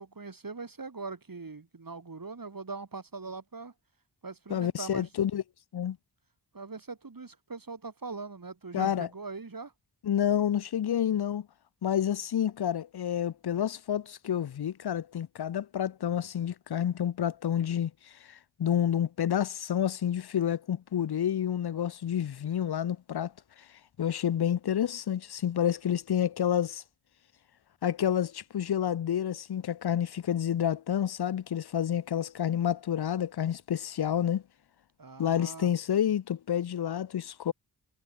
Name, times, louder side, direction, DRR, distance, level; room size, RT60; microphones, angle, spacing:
voice 1, 0.0-3.7 4.2-5.1 6.5-9.7 35.0-35.7, right 4 dB, 50° right, 2.7 m, -41 dB
voice 2, 4.5-5.4 5.7-6.0 8.7-9.1 10.0-11.5 11.8-17.9 18.6-23.3 24.0-26.8 27.8-34.4 35.2-37.5, left 9 dB, 60° left, 0.6 m, -29 dB
wide cardioid pair, 60°, 44 cm